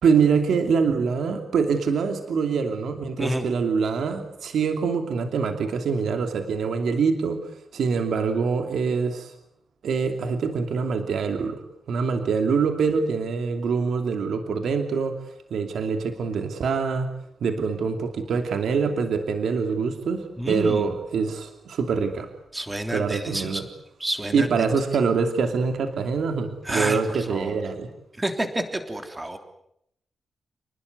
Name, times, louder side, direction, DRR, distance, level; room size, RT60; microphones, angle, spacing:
voice 1, 0.0-9.3 9.8-11.6 11.9-15.1 15.5-17.1 17.4-22.3 22.9-23.6 24.3-27.9, right 5 dB, 70° right, 6 dB, 2.8 m, -24 dB
voice 2, 20.4-20.9 22.5-23.6 24.0-24.7 26.6-27.6 28.2-29.4, right 1 dB, 10° right, 6 dB, 3.3 m, -29 dB
29.5 x 20.0 x 9.5 m, 0.77 s
wide cardioid pair, 170°, 0 cm